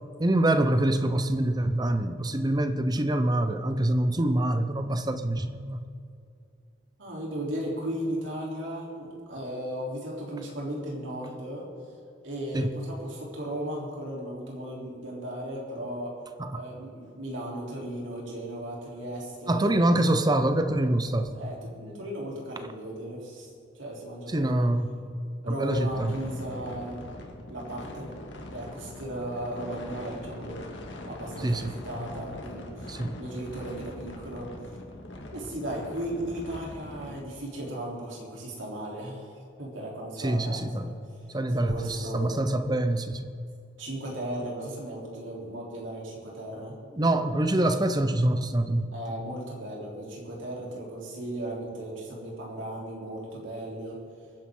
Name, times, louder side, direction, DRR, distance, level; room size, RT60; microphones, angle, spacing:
voice 1, 0.2-5.8 12.5-12.8 16.4-16.6 19.5-21.4 24.3-25.0 25.5-26.2 31.4-31.8 32.9-33.2 40.2-40.9 41.3-43.3 46.9-48.9, right 1 dB, 20° right, 9 dB, 0.8 m, -25 dB
voice 2, 7.0-11.7 12.2-16.1 16.5-20.0 21.3-24.7 25.4-27.1 27.5-28.1 28.5-30.6 31.0-34.5 35.3-41.0 41.5-42.3 43.8-46.8 48.9-54.0, right 1 dB, 80° right, -3 dB, 3.7 m, -36 dB
sound 1, 25.7-37.2, left 1 dB, 70° left, 1.9 m, -42 dB
24.0 x 10.0 x 3.9 m, 2.5 s
head